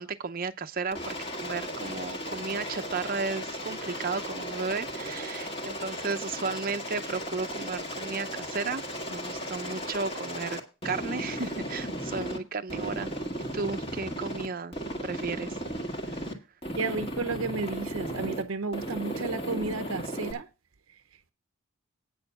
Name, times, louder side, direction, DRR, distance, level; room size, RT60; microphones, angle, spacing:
voice 1, 0.0-8.8 9.1-13.1 13.5-14.7 15.0-15.6, right 4 dB, 45° right, 0.7 m, -34 dB
Aircraft, 0.9-12.4 12.7-14.5 14.7-16.3 16.6-18.4 18.7-20.3, equal, 25° left, 1.9 m, -36 dB
voice 2, 16.8-20.5, right 4 dB, 75° right, 0.8 m, -32 dB
9.2 x 6.8 x 6.8 m
head